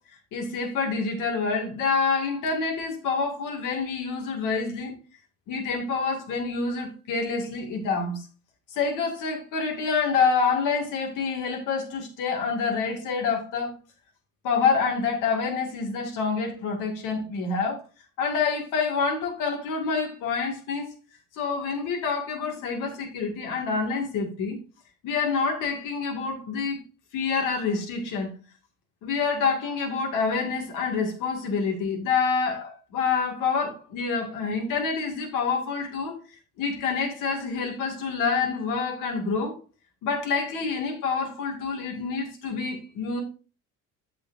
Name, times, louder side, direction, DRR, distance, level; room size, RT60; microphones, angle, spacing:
voice 1, 0.3-5.0 5.5-8.3 8.7-13.7 14.4-17.8 18.2-20.9 21.3-24.6 25.0-26.8 27.1-28.3 29.0-36.2 36.6-39.6 40.0-43.2, left 5 dB, 80° left, 2.2 m, -27 dB
14.5 x 4.9 x 2.6 m
cardioid pair, 175°, 31 cm